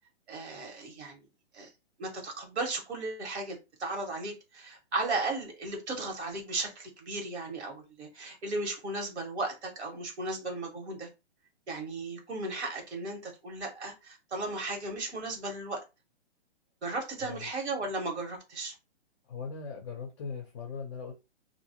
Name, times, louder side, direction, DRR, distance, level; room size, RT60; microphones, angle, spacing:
voice 1, 0.3-1.2 1.5-1.7 2.0-11.1 11.7-15.8 16.8-18.7, right 2 dB, 75° right, 1.4 m, -35 dB
voice 2, 19.3-21.1, left 5 dB, 30° left, 0.5 m, -39 dB
2.5 x 2.0 x 2.8 m
hypercardioid pair, 155°, 34 cm